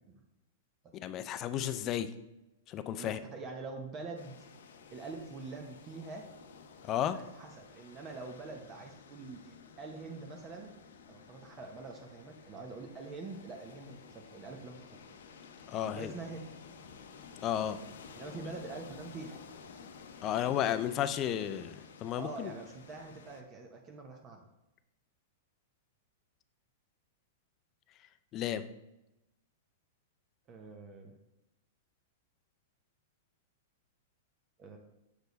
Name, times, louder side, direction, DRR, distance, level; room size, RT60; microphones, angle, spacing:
voice 1, 0.9-2.1 2.7-3.2 6.9-7.2 15.7-16.1 17.4-17.8 20.2-22.5 28.3-28.6, left 10 dB, 30° left, 12 dB, 0.4 m, -33 dB
voice 2, 3.0-4.4 4.9-6.3 7.1-10.7 11.1-14.9 15.8-16.4 18.1-19.4 20.4-20.8 22.1-24.4 30.5-31.1 34.6-34.8, right 3 dB, 25° right, 3 dB, 0.7 m, -45 dB
sound 1, 4.2-23.4, left 6 dB, 80° left, 0.6 m, -53 dB
6.7 x 4.6 x 4.0 m, 0.93 s
hypercardioid pair, 145°, 0 cm